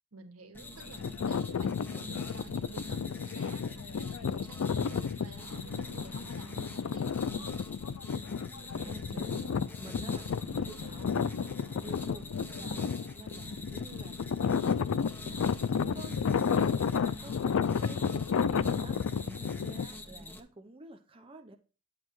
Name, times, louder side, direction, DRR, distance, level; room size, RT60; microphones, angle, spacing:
voice 1, 0.1-7.1 12.5-12.9 19.2-19.8, right 3 dB, 80° right, 1.8 m, -51 dB
sound 1, 0.5-20.4, left 1 dB, 10° left, 1.0 m, -46 dB
sound 2, 0.8-19.9, left 6 dB, 70° left, 0.4 m, -32 dB
voice 2, 8.5-15.0 15.3-21.6, right 2 dB, 25° right, 0.7 m, -50 dB
10.0 x 7.6 x 3.1 m
head